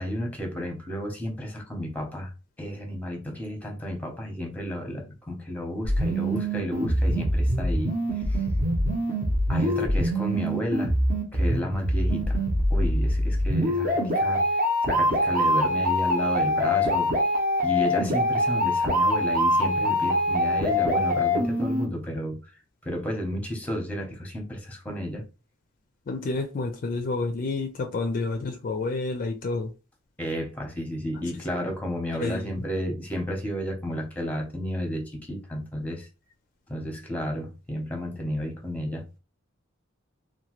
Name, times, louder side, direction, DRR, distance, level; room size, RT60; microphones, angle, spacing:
voice 1, 0.0-2.3 2.6-8.0 8.3-8.4 9.5-10.9 11.3-12.4 12.7-14.4 14.8-17.1 17.6-22.4 22.8-25.2 30.2-36.1 36.7-39.0, equal, 10° left, 0.7 m, -32 dB
sound 1, 5.8-21.9, equal, 45° right, 0.8 m, -24 dB
voice 2, 26.1-29.7 32.1-32.6, left 3 dB, 45° left, 0.4 m, -29 dB
2.8 x 2.2 x 2.9 m
head